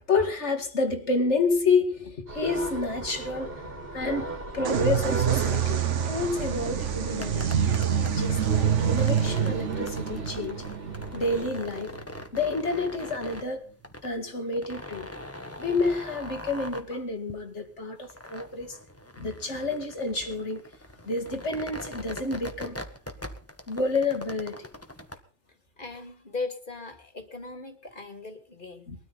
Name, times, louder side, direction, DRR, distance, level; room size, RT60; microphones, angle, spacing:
voice 1, 0.0-10.6 11.1-11.9 12.3-13.6 14.0-15.1 15.6-18.8 19.2-20.6 21.0-22.8 23.7-24.7 28.9-29.0, left 3 dB, 75° left, 2.5 m, -29 dB
sound 1, 2.3-11.5, right 2 dB, 50° right, 3.2 m, -38 dB
sound 2, 4.6-12.2, right 8 dB, 85° right, 1.3 m, -27 dB
sound 3, 7.1-25.2, left 1 dB, 10° left, 1.5 m, -42 dB
voice 2, 25.5-28.9, left 3 dB, 45° left, 2.6 m, -38 dB
22.0 x 13.0 x 4.2 m
omnidirectional pair, 1.2 m